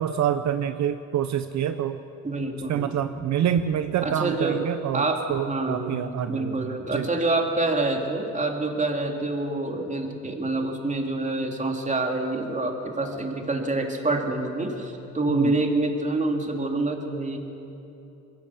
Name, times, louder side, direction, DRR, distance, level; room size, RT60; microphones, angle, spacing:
voice 1, 0.0-2.0 2.7-7.1 15.3-15.5, right 10 dB, 65° right, 10 dB, 0.8 m, -27 dB
voice 2, 2.2-3.0 4.0-4.6 4.9-17.4, right 2 dB, 25° right, 3 dB, 2.7 m, -27 dB
22.0 x 17.0 x 7.1 m, 2.9 s
cardioid pair, 90°, 30 cm